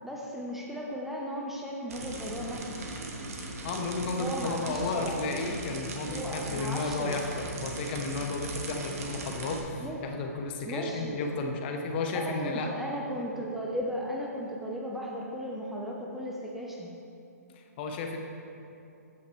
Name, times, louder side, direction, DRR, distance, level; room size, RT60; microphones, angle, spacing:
voice 1, 0.0-2.8 4.2-5.2 6.1-7.2 9.8-10.0 10.6-11.2 12.1-16.9, equal, ahead, -3 dB, 0.7 m, -36 dB
sound 1, 1.9-9.6, right 2 dB, 60° right, 1.4 m, -39 dB
voice 2, 3.6-12.7 17.6-18.2, left 3 dB, 40° left, 3 dB, 0.9 m, -33 dB
14.0 x 5.7 x 3.1 m, 2.7 s
hypercardioid pair, 140°, 9 cm